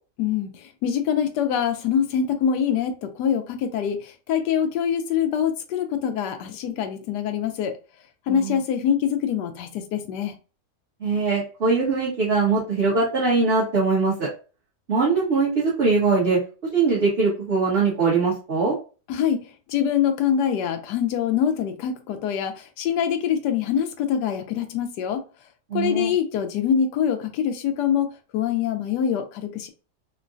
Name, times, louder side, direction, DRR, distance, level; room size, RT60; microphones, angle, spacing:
voice 1, 0.2-7.8 8.3-10.4 19.1-25.2 25.7-29.7, left 8 dB, 80° left, 1.2 m, -24 dB
voice 2, 8.3-8.6 11.0-14.3 14.9-16.4 16.7-18.8 25.7-26.1, right 4 dB, 40° right, 1.3 m, -21 dB
3.8 x 2.2 x 2.5 m
omnidirectional pair, 1.8 m